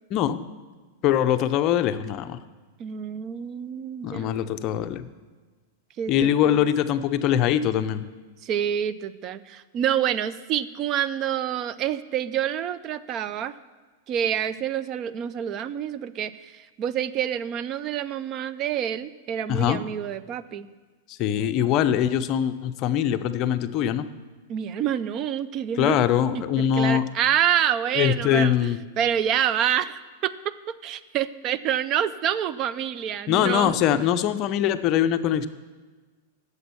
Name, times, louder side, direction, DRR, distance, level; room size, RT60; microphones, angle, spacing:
voice 1, 1.0-2.4 4.0-5.1 6.1-8.0 19.5-19.8 21.1-24.1 25.8-27.0 27.9-28.8 33.3-35.5, left 10 dB, 40° left, 11 dB, 0.5 m, -22 dB
voice 2, 2.8-4.3 6.0-6.7 8.4-13.5 14.1-20.7 24.5-26.0 26.7-30.3 30.8-33.8, right 9 dB, 35° right, 15 dB, 0.4 m, -27 dB
8.5 x 7.0 x 7.0 m, 1.3 s
hypercardioid pair, 135°, 0 cm